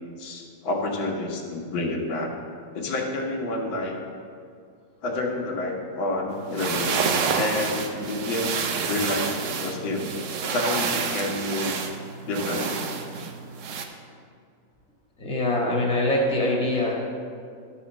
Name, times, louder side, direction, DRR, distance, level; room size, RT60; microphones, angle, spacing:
voice 1, 0.2-2.3 2.7-4.0 5.0-7.0 7.3-8.5 8.9-10.1 10.5-11.8 12.3-12.8, left 2 dB, 80° left, 0 dB, 1.9 m, -29 dB
sound 1, 6.4-13.9, right 5 dB, 65° right, 0.7 m, -28 dB
voice 2, 15.2-17.0, left 1 dB, 5° left, -3 dB, 1.3 m, -23 dB
11.0 x 4.2 x 7.1 m, 2.2 s
omnidirectional pair, 2.1 m